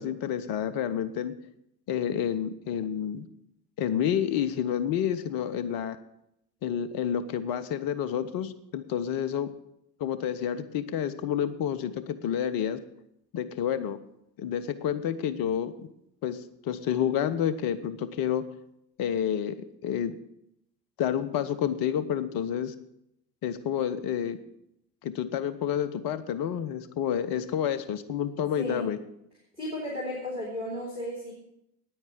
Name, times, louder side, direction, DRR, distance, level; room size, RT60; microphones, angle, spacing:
voice 1, 0.0-1.3 1.9-3.3 3.8-6.0 6.6-9.5 10.0-12.8 13.3-14.0 14.4-15.7 16.2-18.5 19.0-19.6 19.8-20.1 21.0-22.7 23.4-24.4 25.0-29.0, left 9 dB, 50° left, 13 dB, 1.0 m, -29 dB
voice 2, 28.5-28.9 29.6-31.3, left 1 dB, 90° right, -7 dB, 2.8 m, -34 dB
9.5 x 8.9 x 7.5 m, 0.80 s
figure-of-eight pair, 55°, 46 cm